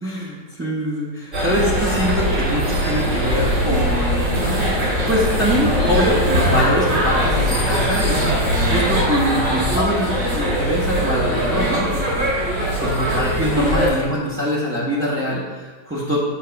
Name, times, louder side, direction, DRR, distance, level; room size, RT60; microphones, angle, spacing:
voice 1, 0.0-4.8 5.1-8.3 8.6-16.2, equal, 10° right, -7 dB, 0.7 m, -24 dB
sound 1, 1.3-13.9, equal, 55° right, 2.2 m, -20 dB
7.4 x 3.0 x 5.6 m, 1.3 s
omnidirectional pair, 1.8 m